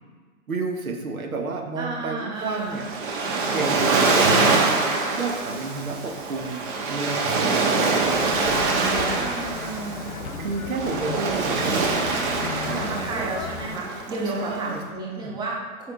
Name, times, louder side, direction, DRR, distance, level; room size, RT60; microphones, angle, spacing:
voice 1, 0.5-2.9 3.5-4.9 5.1-6.6 6.9-9.4 9.6-10.0 10.4-13.3 14.3-15.4, right 3 dB, 90° right, 3 dB, 1.1 m, -32 dB
voice 2, 1.8-2.8 3.8-4.2 7.3-8.2 9.1-10.1 12.8-15.9, right 2 dB, 10° right, -3 dB, 0.9 m, -32 dB
Waves surf, 2.4-14.8, right 3 dB, 40° right, 1.1 m, -24 dB
sound 1, 8.0-13.8, left 6 dB, 80° left, 0.7 m, -36 dB
6.4 x 5.3 x 3.4 m, 1.5 s
hypercardioid pair, 130°, 41 cm